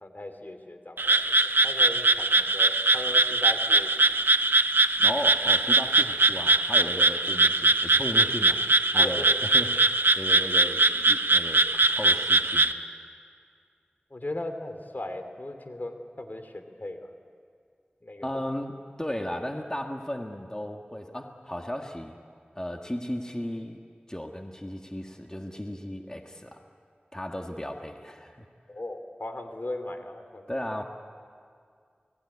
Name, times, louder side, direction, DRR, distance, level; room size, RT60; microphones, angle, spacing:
voice 1, 0.0-4.2 5.1-5.2 8.9-9.4 14.1-17.1 18.0-18.4 28.7-30.6, left 1 dB, 60° left, 6 dB, 2.6 m, -38 dB
Frog, 1.0-12.7, right 3 dB, 85° right, 0.9 m, -22 dB
voice 2, 5.0-12.7 18.2-22.2 22.6-23.8 24.1-26.6 27.1-28.5 30.5-30.8, left 1 dB, 20° left, 3 dB, 1.7 m, -35 dB
28.5 x 19.5 x 9.7 m, 2.2 s
wide cardioid pair, 50°, 4 cm